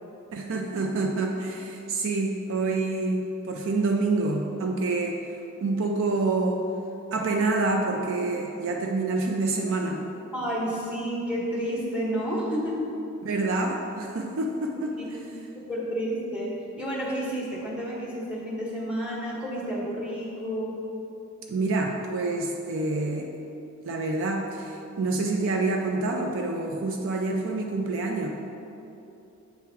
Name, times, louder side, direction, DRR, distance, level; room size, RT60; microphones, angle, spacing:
voice 1, 0.3-5.2 5.6-6.6 7.1-10.0 13.2-15.0 21.5-23.3 23.9-28.3, right 3 dB, 60° right, 2 dB, 0.5 m, -27 dB
voice 2, 10.3-12.8 14.9-15.0 15.7-16.5 16.8-20.7, equal, 5° right, -6 dB, 1.2 m, -30 dB
8.0 x 3.6 x 4.5 m, 2.8 s
head